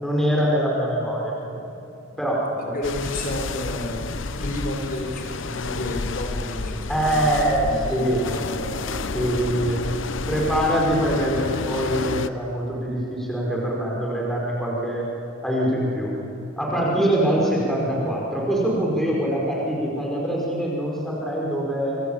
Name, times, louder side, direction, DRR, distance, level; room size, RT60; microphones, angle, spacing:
voice 1, 0.0-1.7 2.2-2.7 6.9-8.2 9.1-9.8 10.3-15.1 15.4-16.1 16.6-22.0, right 1 dB, ahead, -4 dB, 5.3 m, -24 dB
voice 2, 2.5-9.0, left 1 dB, 45° left, 2 dB, 5.0 m, -31 dB
sound 1, 2.8-12.3, left 4 dB, 65° left, 0.8 m, -30 dB
27.0 x 23.0 x 8.9 m, 2.9 s
head